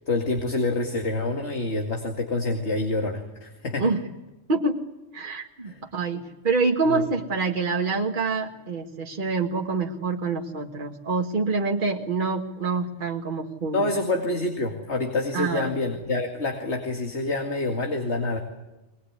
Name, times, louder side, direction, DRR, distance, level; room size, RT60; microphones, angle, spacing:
voice 1, 0.1-3.8 5.7-5.8 6.8-7.1 13.7-18.4, left 2 dB, 65° left, 4 dB, 2.6 m, -27 dB
voice 2, 5.1-13.8 15.3-15.7, right 4 dB, 45° right, 1 dB, 1.9 m, -26 dB
23.0 x 20.5 x 9.6 m, 1.0 s
omnidirectional pair, 1.2 m